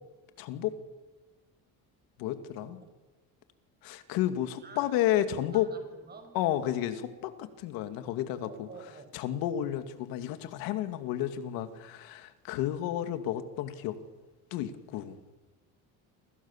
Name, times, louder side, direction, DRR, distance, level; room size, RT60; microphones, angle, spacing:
voice 1, 0.4-0.8 2.2-2.8 3.8-5.7 6.3-8.7 9.1-14.0 14.5-15.2, left 12 dB, 90° left, 9 dB, 2.5 m, -31 dB
voice 2, 4.6-6.4 8.4-9.2, right 4 dB, 30° right, 6 dB, 6.0 m, -51 dB
29.0 x 25.5 x 7.4 m, 1.2 s
cardioid pair, 145°, 34 cm